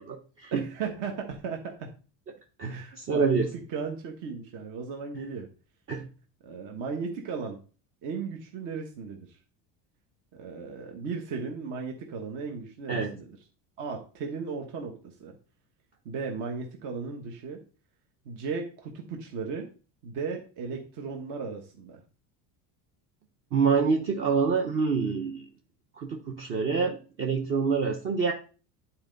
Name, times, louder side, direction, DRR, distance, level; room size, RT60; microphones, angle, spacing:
voice 1, 0.0-0.6 2.6-3.5 5.9-6.1 12.9-13.1 23.5-25.5 26.0-28.3, right 5 dB, 35° right, 3 dB, 0.8 m, -26 dB
voice 2, 0.5-1.9 2.7-5.5 6.4-7.6 8.0-9.4 10.3-13.4 13.8-15.3 16.0-17.6 18.2-19.7 20.0-22.0, right 5 dB, 55° right, 2 dB, 1.3 m, -36 dB
9.8 x 4.3 x 4.0 m, 0.37 s
cardioid pair, 160°, 38 cm